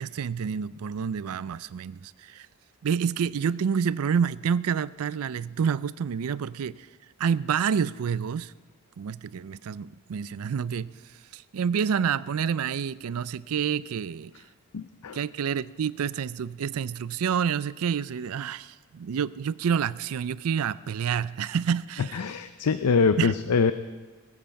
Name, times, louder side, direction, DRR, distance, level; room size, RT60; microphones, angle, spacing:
voice 1, 0.0-2.5 2.8-6.9 7.2-8.5 9.0-10.9 11.3-14.3 15.1-22.2 23.2-23.3, right 7 dB, 75° right, 18 dB, 0.4 m, -28 dB
voice 2, 14.7-15.2 22.0-23.7, left 5 dB, 90° left, 11 dB, 0.5 m, -24 dB
19.5 x 9.2 x 5.2 m, 1.4 s
head